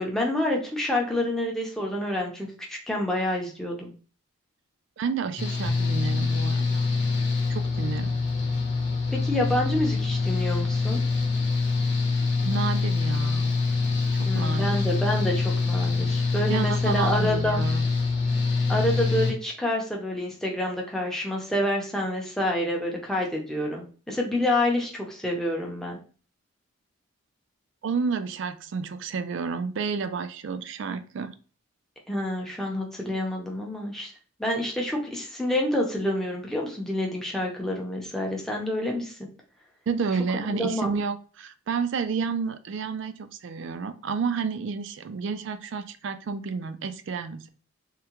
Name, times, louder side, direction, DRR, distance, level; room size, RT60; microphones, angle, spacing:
voice 1, 0.0-3.9 9.1-11.0 14.3-17.6 18.7-26.0 32.1-34.1 34.4-39.3 40.5-40.9, left 1 dB, ahead, -1 dB, 0.5 m, -28 dB
voice 2, 5.0-6.9 7.5-8.2 12.4-13.6 14.1-14.8 16.5-17.8 27.8-31.3 39.9-47.5, right 5 dB, 60° right, 11 dB, 0.3 m, -30 dB
Engine / Mechanical fan, 5.4-19.3, left 4 dB, 50° left, 0.8 m, -25 dB
3.5 x 2.1 x 2.8 m, 0.39 s
head